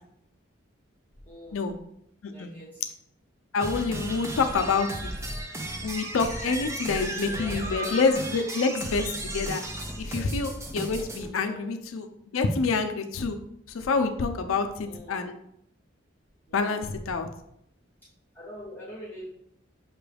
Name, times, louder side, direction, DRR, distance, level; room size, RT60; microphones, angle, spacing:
voice 1, 1.2-1.7 2.3-2.8 4.3-4.6 6.9-7.9 11.2-11.8 14.8-15.3 16.5-16.8 18.3-19.3, left 1 dB, 10° left, -7 dB, 1.0 m, -44 dB
voice 2, 3.5-5.1 5.8-9.6 10.0-12.1 12.3-13.4 13.7-15.3 16.5-17.3, left 4 dB, 85° left, 7 dB, 0.5 m, -27 dB
sound 1, 3.6-11.3, right 1 dB, 15° right, 0.4 m, -34 dB
5.8 x 2.3 x 3.3 m, 0.74 s
head